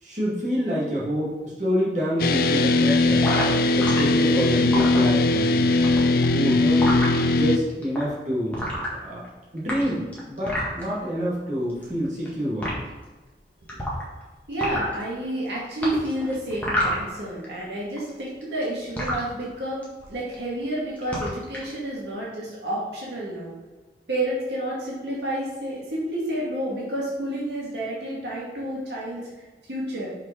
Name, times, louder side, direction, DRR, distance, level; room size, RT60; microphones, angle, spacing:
voice 1, 0.0-3.3 3.7-5.7 6.3-6.9 7.3-8.6 9.0-9.2 9.5-12.8, equal, 40° right, -7 dB, 2.5 m, -27 dB
sound 1, 2.2-7.6, left 2 dB, 55° left, 0.4 m, -20 dB
sound 2, 3.2-4.0 4.5-5.4 5.7-7.2 7.8-8.0 8.5-9.3 9.6-10.8 11.7-12.3 12.6-12.7 13.7-14.2 14.5-15.0 15.8-17.4 17.7-19.2 19.8-20.1 20.3-20.7 21.0-21.6, equal, 10° left, 1.7 m, -28 dB
voice 2, 14.5-23.5 24.1-29.2 29.7-30.1, right 1 dB, 80° right, -5 dB, 2.0 m, -30 dB
5.8 x 5.5 x 5.1 m, 1.2 s
head